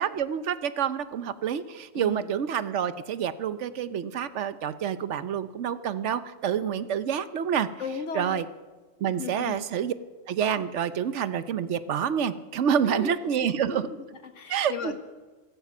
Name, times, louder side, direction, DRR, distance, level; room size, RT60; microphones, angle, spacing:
voice 1, 0.0-7.7 8.1-8.4 9.0-9.9 10.3-13.9 14.5-15.0, right 8 dB, 70° right, 14 dB, 1.0 m, -28 dB
voice 2, 1.9-2.3 7.8-8.4 9.2-9.7 12.8-15.0, left 4 dB, 70° left, 8 dB, 1.6 m, -36 dB
15.0 x 15.0 x 6.0 m, 1.3 s
omnidirectional pair, 1.3 m